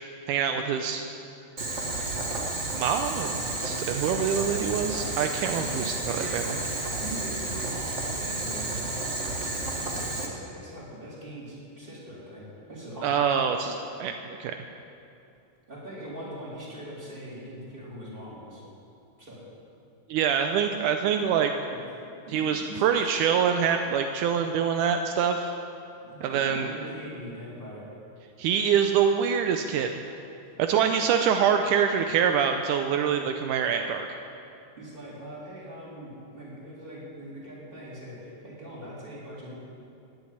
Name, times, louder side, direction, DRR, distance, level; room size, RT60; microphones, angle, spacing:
voice 1, 0.3-1.1 2.8-6.6 13.0-14.6 20.1-21.5 22.3-25.5 26.2-26.7 28.4-29.9 30.6-34.1, right 7 dB, 80° right, 5 dB, 2.1 m, -25 dB
Boiling, 1.6-10.3, right 2 dB, 45° right, 0.9 m, -31 dB
voice 2, 5.5-6.3 6.7-9.2 9.8-12.4 12.7-13.2 15.7-18.6 19.2-19.4 21.7-21.8 22.3-23.2 26.0-27.8 30.8-30.9 34.8-39.5, right 1 dB, 15° right, -6 dB, 3.9 m, -41 dB
16.5 x 7.2 x 9.7 m, 2.6 s
omnidirectional pair, 3.7 m